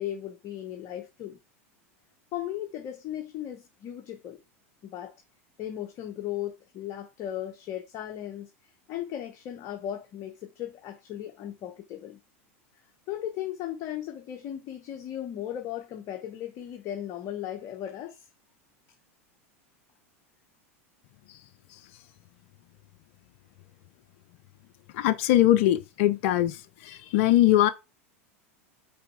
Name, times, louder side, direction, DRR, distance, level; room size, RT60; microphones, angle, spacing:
voice 1, 0.0-1.4 2.3-4.4 4.8-5.1 5.6-12.2 13.1-18.3, left 11 dB, 45° left, 1.0 m, -36 dB
voice 2, 24.9-27.7, left 14 dB, 60° left, 0.5 m, -22 dB
5.8 x 4.0 x 4.6 m
hypercardioid pair, 90°, 8 cm